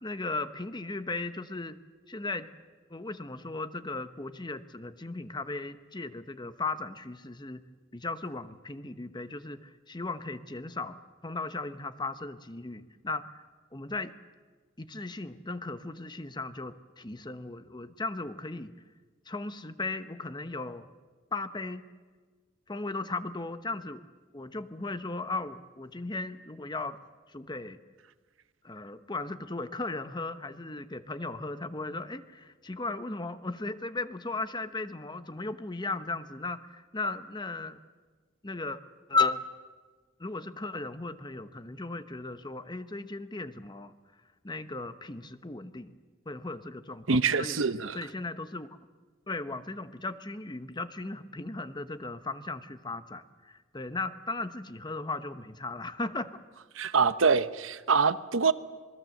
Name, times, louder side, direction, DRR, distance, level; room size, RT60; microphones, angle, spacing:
voice 1, 0.0-1.8 2.1-2.5 2.9-7.6 7.9-13.4 13.7-14.1 14.8-18.7 19.3-20.9 21.3-21.8 22.7-24.0 24.3-27.0 27.3-27.8 28.6-37.8 38.4-38.8 39.1-39.4 40.2-43.9 44.4-45.9 46.3-47.6 47.9-48.7 49.3-56.4, left 3 dB, 20° left, 1.0 m, -36 dB
voice 2, 47.1-48.0 56.8-58.5, right 5 dB, 85° right, 0.9 m, -25 dB
26.5 x 21.0 x 7.8 m
head